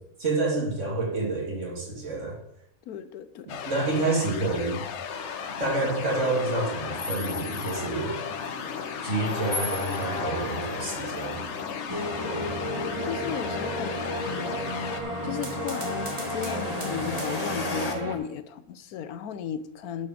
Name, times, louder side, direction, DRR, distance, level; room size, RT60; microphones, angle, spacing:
voice 1, 0.2-2.4 3.7-4.8 5.6-8.1 9.0-11.4, right 2 dB, 55° right, -2 dB, 2.4 m, -28 dB
voice 2, 2.9-3.5 12.2-12.5 13.0-14.6 15.2-20.1, left 8 dB, 85° left, 13 dB, 1.2 m, -35 dB
sound 1, 3.5-15.0, left 7 dB, 60° left, 0.9 m, -36 dB
sound 2, 5.1-17.9, left 3 dB, 30° left, 1.0 m, -36 dB
sound 3, 11.9-18.2, equal, 20° right, 1.2 m, -33 dB
10.5 x 5.0 x 6.2 m, 0.79 s
omnidirectional pair, 1.5 m